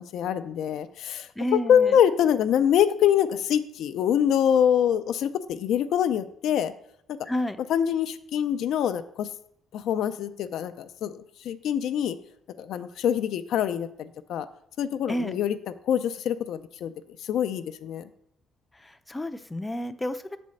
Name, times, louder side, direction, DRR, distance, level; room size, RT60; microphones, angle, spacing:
voice 1, 0.0-1.3 1.7-6.7 7.7-9.3 9.7-11.2 11.4-12.2 12.6-14.5 14.8-15.5 15.9-16.9 17.2-18.1, left 9 dB, 80° left, 10 dB, 0.4 m, -24 dB
voice 2, 1.4-2.0 7.2-7.6 15.1-15.4 18.7-20.4, left 1 dB, 15° left, 10 dB, 0.5 m, -30 dB
6.7 x 4.2 x 6.3 m, 0.70 s
cardioid pair, 90°, 0 cm